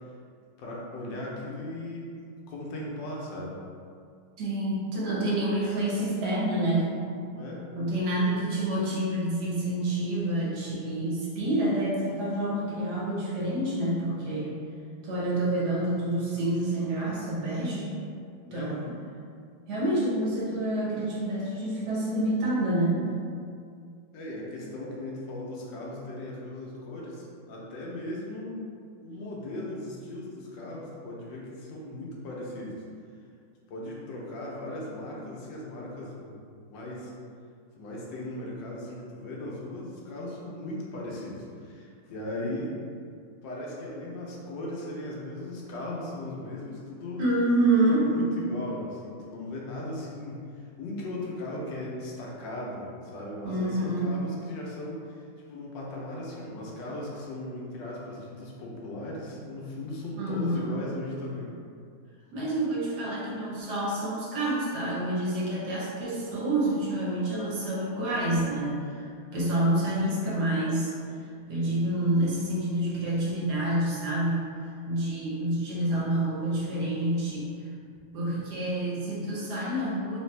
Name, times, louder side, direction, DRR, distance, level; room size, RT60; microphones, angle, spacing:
voice 1, 0.6-2.2 2.5-3.6 7.3-7.7 18.5-18.8 24.1-28.7 29.0-32.8 33.7-36.4 36.7-37.1 37.8-42.7 43.4-47.2 47.9-55.2 55.5-61.5, left 1 dB, 65° left, -4 dB, 1.2 m, -37 dB
voice 2, 4.4-7.0 7.7-14.5 15.0-17.9 18.5-18.8 19.7-23.0 47.2-48.2 53.4-54.2 60.1-60.7 62.3-70.9 71.5-74.5 74.9-77.5 78.1-80.2, right 1 dB, 60° right, -6 dB, 1.2 m, -28 dB
3.5 x 3.2 x 3.2 m, 2.3 s
omnidirectional pair, 2.4 m